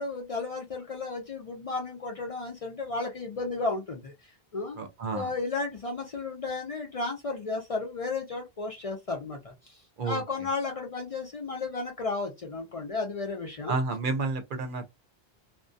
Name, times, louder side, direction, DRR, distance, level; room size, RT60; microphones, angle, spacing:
voice 1, 0.0-4.1 4.5-4.8 5.1-9.8 10.0-13.8, left 3 dB, 45° left, 0.5 m, -33 dB
voice 2, 4.8-5.3 10.0-10.2 13.7-14.9, right 3 dB, 60° right, 0.7 m, -30 dB
2.6 x 2.1 x 2.2 m
omnidirectional pair, 1.0 m